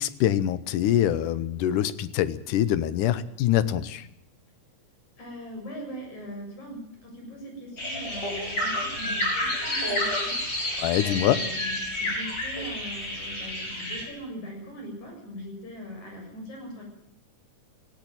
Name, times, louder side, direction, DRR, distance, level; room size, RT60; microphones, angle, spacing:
voice 1, 0.0-4.0 10.8-11.4, left 11 dB, 90° left, 15 dB, 2.5 m, -24 dB
voice 2, 5.2-16.8, equal, 65° left, 1 dB, 8.7 m, -41 dB
sound 1, 7.8-14.0, left 1 dB, 35° left, 5.8 m, -30 dB
17.0 x 17.0 x 9.1 m, 0.81 s
omnidirectional pair, 3.6 m